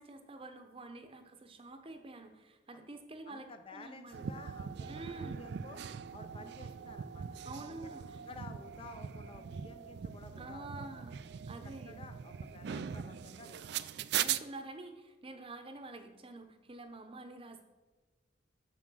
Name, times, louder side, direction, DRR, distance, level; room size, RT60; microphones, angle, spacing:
voice 1, 0.0-4.3 4.9-5.4 7.4-8.0 10.4-11.2 11.5-12.0 14.2-17.6, right 2 dB, 25° right, 8 dB, 0.8 m, -48 dB
voice 2, 3.3-5.8 6.1-7.3 8.2-11.0 11.6-13.9, left 4 dB, 25° left, 8 dB, 0.4 m, -53 dB
sound 1, 4.1-14.4, right 9 dB, 55° right, 0.3 m, -40 dB
7.5 x 6.4 x 6.2 m, 1.3 s
head